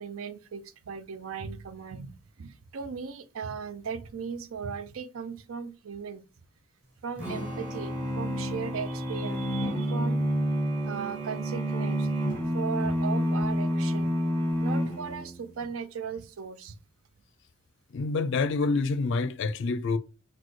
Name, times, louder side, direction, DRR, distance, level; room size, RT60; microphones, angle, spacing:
voice 1, 0.0-6.2 7.0-10.2 10.8-14.1 14.5-16.8, right 6 dB, 85° right, 0.5 m, -37 dB
Strum, 7.2-13.4, left 1 dB, 5° right, 0.8 m, -48 dB
sound 1, 7.2-15.5, equal, 45° right, 2.2 m, -29 dB
voice 2, 17.9-20.0, left 3 dB, 65° left, 0.4 m, -27 dB
6.1 x 2.2 x 3.1 m
head